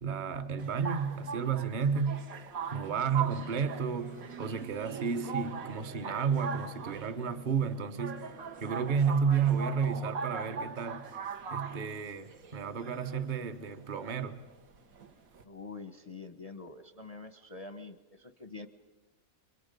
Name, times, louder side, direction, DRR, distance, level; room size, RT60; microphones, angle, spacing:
voice 1, 0.0-2.2 2.7-8.3 8.6-11.0 11.5-14.4, right 6 dB, 40° right, 0.9 m, -31 dB
sound 1, 0.6-15.4, right 6 dB, 70° right, 1.6 m, -41 dB
sound 2, 2.8-13.6 13.9-14.0 14.9-15.0, right 5 dB, 85° right, 2.9 m, -51 dB
voice 2, 15.4-18.7, left 3 dB, 35° left, 0.6 m, -45 dB
30.0 x 23.0 x 5.3 m
omnidirectional pair, 1.5 m